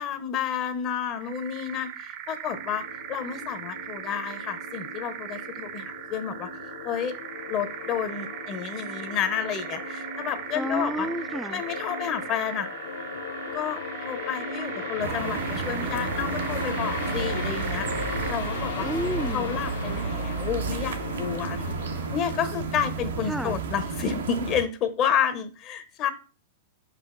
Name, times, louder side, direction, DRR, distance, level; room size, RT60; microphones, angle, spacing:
voice 1, 0.0-6.5 6.8-7.2 7.5-11.1 11.5-12.7 13.5-18.9 19.3-21.8 22.1-26.1, left 8 dB, 40° left, 0.8 m, -30 dB
sound 1, 1.1-18.5, right 10 dB, 45° right, 0.8 m, -39 dB
sound 2, 2.5-22.2, left 4 dB, 65° left, 0.9 m, -38 dB
voice 2, 10.5-11.6 18.8-19.5 23.3-23.6, equal, ahead, 0.4 m, -31 dB
sound 3, 15.0-24.6, right 4 dB, 85° right, 1.1 m, -31 dB
5.0 x 5.0 x 3.8 m
hypercardioid pair, 125°, 0 cm